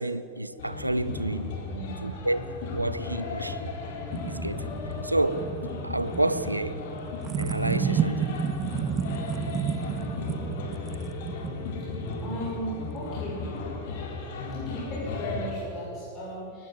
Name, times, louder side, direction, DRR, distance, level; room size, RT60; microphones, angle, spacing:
voice 1, 0.0-1.6 2.0-2.4 2.7-3.7 4.2-4.7 5.0-5.5 5.8-6.8 7.4-8.3, right 1 dB, 85° right, 0.8 m, -29 dB
sound 1, 0.6-15.5, left 3 dB, 55° left, 3.8 m, -35 dB
voice 2, 1.7-2.1 12.2-13.5 14.5-16.7, equal, 30° left, 6.9 m, -36 dB
sound 2, 3.5-13.6, right 7 dB, 30° right, 1.2 m, -32 dB
22.5 x 19.0 x 7.9 m
figure-of-eight pair, 90°, 0 cm